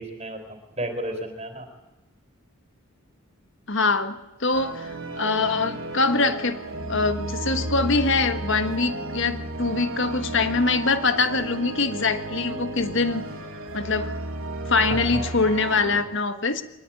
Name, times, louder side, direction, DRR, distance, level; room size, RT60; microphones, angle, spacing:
voice 1, 0.0-1.7 15.0-15.3, right 1 dB, 30° right, 6 dB, 4.7 m, -33 dB
voice 2, 3.7-6.6 6.9-13.2 13.7-14.1 14.7-16.6, left 3 dB, 55° left, 10 dB, 1.6 m, -24 dB
sound 1, 4.5-16.0, right 2 dB, 65° right, 2.9 m, -33 dB
23.5 x 19.5 x 9.2 m, 1.0 s
head